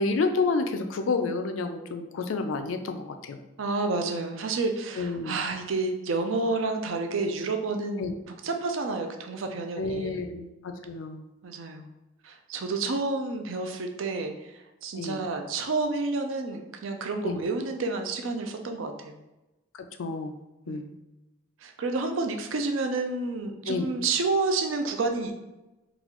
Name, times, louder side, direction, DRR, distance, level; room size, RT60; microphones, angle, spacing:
voice 1, 0.0-3.4 5.0-5.4 8.0-8.1 9.8-11.2 15.0-15.2 17.2-17.4 19.8-20.3 20.7-20.9 23.7-23.9, left 3 dB, 85° left, 6 dB, 0.4 m, -29 dB
voice 2, 3.6-10.3 11.4-11.9 12.2-19.2 20.7-20.8 21.6-25.3, right 3 dB, 85° right, 5 dB, 0.5 m, -30 dB
3.9 x 2.3 x 2.9 m, 1.0 s
head